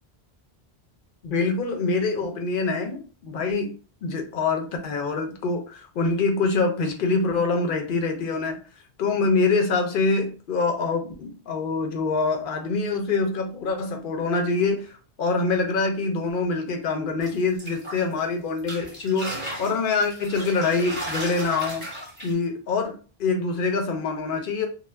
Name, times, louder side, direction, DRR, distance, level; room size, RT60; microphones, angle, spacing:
voice 1, 1.2-3.7 4.0-8.6 9.0-21.9 22.2-24.7, left 4 dB, 60° left, 4 dB, 0.7 m, -25 dB
sound 1, 17.2-18.2 18.6-22.3, right 1 dB, 10° right, 0.9 m, -35 dB
2.3 x 2.0 x 3.2 m, 0.36 s
omnidirectional pair, 1.1 m